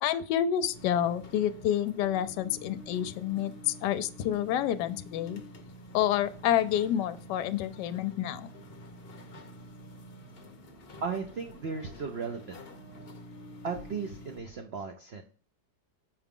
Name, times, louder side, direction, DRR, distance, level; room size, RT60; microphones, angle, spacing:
voice 1, 0.0-5.4 5.9-8.5, left 10 dB, 75° left, 12 dB, 1.1 m, -28 dB
sound 1, 0.7-14.4, equal, 45° left, 0.8 m, -48 dB
voice 2, 11.0-12.6 13.6-15.2, right 5 dB, 80° right, 4 dB, 0.5 m, -36 dB
6.9 x 4.9 x 3.6 m, 0.43 s
omnidirectional pair, 2.0 m